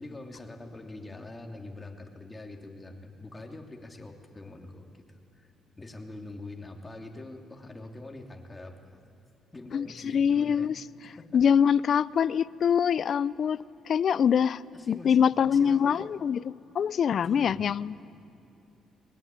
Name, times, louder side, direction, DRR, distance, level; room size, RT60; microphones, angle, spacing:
voice 1, 0.0-5.0 5.3-5.5 5.8-9.0 9.5-10.7 11.2-11.4 14.7-15.2 15.4-16.1 17.2-17.7, left 2 dB, 20° left, 2 dB, 2.8 m, -44 dB
voice 2, 9.7-10.8 11.3-16.4 16.7-18.1, left 7 dB, 55° left, 18 dB, 0.4 m, -24 dB
21.0 x 20.5 x 9.4 m, 2.7 s
cardioid pair, 90°, 0 cm